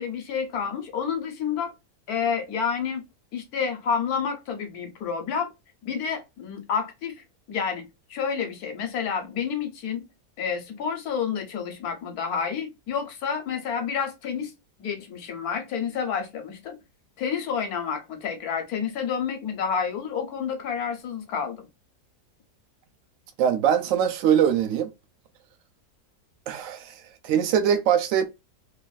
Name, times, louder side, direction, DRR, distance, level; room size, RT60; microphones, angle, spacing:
voice 1, 0.0-1.7 2.1-3.0 3.3-5.5 5.8-7.1 7.5-7.8 8.1-10.1 10.4-14.5 14.8-16.8 17.2-21.7, left 6 dB, 70° left, 1.2 m, -29 dB
voice 2, 23.4-24.9 26.5-28.3, right 9 dB, 65° right, 0.8 m, -22 dB
3.1 x 2.4 x 2.2 m
omnidirectional pair, 1.8 m